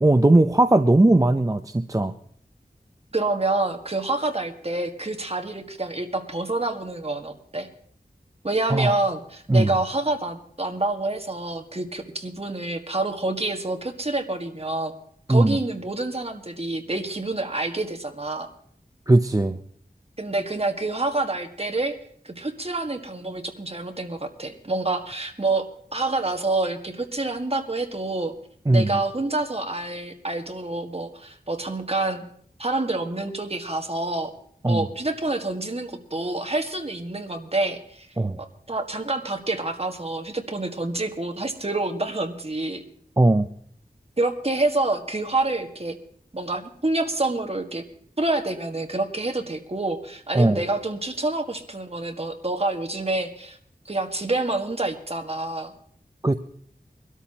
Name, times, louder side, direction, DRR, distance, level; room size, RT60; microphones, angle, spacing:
voice 1, 0.0-2.1 8.7-9.0 9.5-9.8 15.3-15.6 19.1-19.6 28.7-29.0 34.6-34.9 38.2-38.4 43.2-43.5 50.3-50.6 56.2-56.3, right 2 dB, 20° right, 9 dB, 0.5 m, -18 dB
voice 2, 3.1-7.7 8.4-14.9 15.3-18.5 20.2-22.0 22.2-28.3 28.7-32.2 32.6-34.3 34.6-38.1 38.4-42.8 44.2-46.0 46.3-47.8 48.2-53.6 53.9-55.7, right 2 dB, 40° right, 5 dB, 1.6 m, -27 dB
24.0 x 13.0 x 2.9 m, 0.63 s
wide cardioid pair, 60°, 16 cm